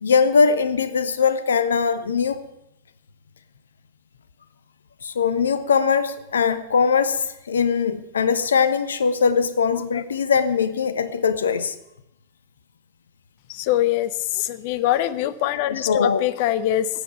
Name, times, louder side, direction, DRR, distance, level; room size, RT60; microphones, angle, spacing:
voice 1, 0.0-2.4 5.0-11.7 15.7-16.2, left 6 dB, 70° left, 14 dB, 1.0 m, -21 dB
voice 2, 13.5-16.9, left 13 dB, 50° left, 16 dB, 0.8 m, -23 dB
14.5 x 8.6 x 9.1 m, 0.83 s
figure-of-eight pair, 90°, 0 cm